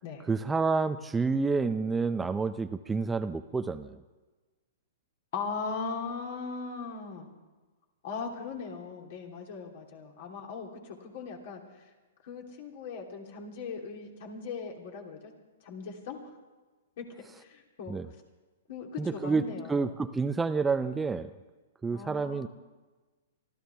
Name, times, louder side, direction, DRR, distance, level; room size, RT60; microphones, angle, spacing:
voice 1, 0.2-4.0 17.9-18.1 19.0-19.4 19.7-21.3 21.8-22.5, right 4 dB, 10° right, 10 dB, 0.5 m, -29 dB
voice 2, 5.3-7.3 8.0-11.6 12.2-15.3 15.6-16.2 17.0-17.1 17.4-17.9 18.7-19.9 21.9-22.5, left 5 dB, 55° left, 1 dB, 3.0 m, -39 dB
24.5 x 14.0 x 3.5 m, 1.2 s
hypercardioid pair, 125°, 0 cm